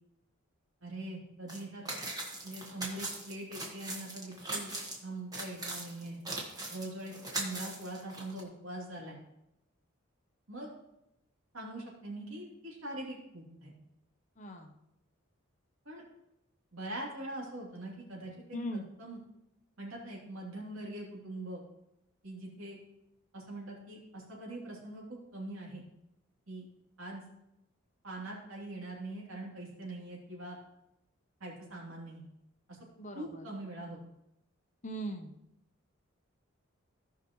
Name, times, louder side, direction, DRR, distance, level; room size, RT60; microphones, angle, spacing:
voice 1, 0.8-1.8 2.4-4.7 5.0-6.2 6.7-9.2 10.5-10.7 11.5-13.7 15.8-16.0 16.7-18.3 19.0-19.2 19.8-21.6 22.2-22.8 23.3-25.8 26.5-26.7 27.0-27.2 28.0-30.6 31.4-32.2 32.7-32.8 33.1-34.0, right 1 dB, 70° right, -3 dB, 3.1 m, -42 dB
sound 1, 1.5-1.6 1.8-5.0 5.3-8.4, right 2 dB, 15° right, 1.5 m, -40 dB
voice 2, 14.4-14.8 18.5-18.9 33.0-33.5 34.8-35.4, right 1 dB, 35° left, 5 dB, 0.8 m, -39 dB
16.5 x 5.6 x 3.1 m, 0.85 s
head